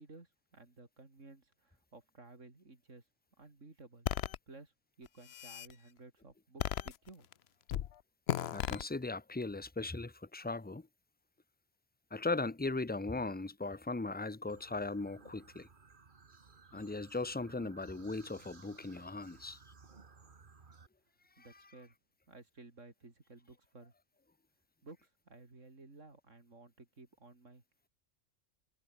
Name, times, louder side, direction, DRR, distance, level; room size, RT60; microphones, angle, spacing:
voice 1, 0.0-3.0 3.4-4.1 4.5-7.3 21.4-21.9 22.3-23.9 24.8-27.6, right 3 dB, 65° right, 4.1 m, -56 dB
sound 1, 4.1-4.4 5.1-5.7 6.6-7.3 7.7-7.9 8.3-8.8, left 11 dB, 60° left, 0.8 m, -35 dB
voice 2, 8.5-10.9 12.1-15.7 16.7-19.6 21.4-21.5, left 3 dB, 10° left, 0.6 m, -38 dB
sound 2, 14.5-20.9, right 4 dB, 40° right, 1.6 m, -59 dB
omnidirectional pair, 1.4 m